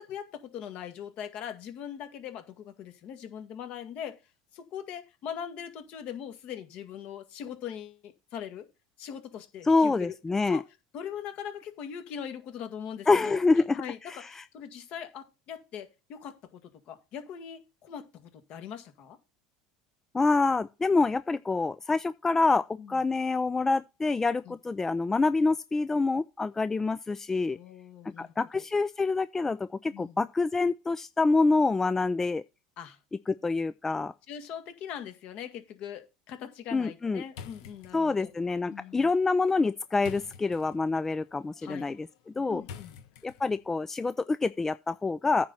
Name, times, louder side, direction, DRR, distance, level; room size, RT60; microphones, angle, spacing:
voice 1, 0.0-4.2 4.5-8.7 9.0-10.2 10.5-10.6 10.9-19.2 22.8-23.0 24.5-24.6 27.5-28.6 29.9-30.2 32.8-33.0 34.3-38.3 38.7-39.1 41.6-42.0 42.5-43.0, left 8 dB, 55° left, 2.0 m, -41 dB
voice 2, 9.6-10.6 13.1-14.4 20.1-27.6 28.0-32.4 33.3-34.1 36.7-37.2 37.9-42.1 42.4-42.6 43.2-45.5, left 3 dB, 15° left, 0.4 m, -26 dB
sound 1, 37.3-43.8, left 7 dB, 70° left, 1.4 m, -50 dB
9.5 x 4.1 x 7.5 m
supercardioid pair, 95°, 3 cm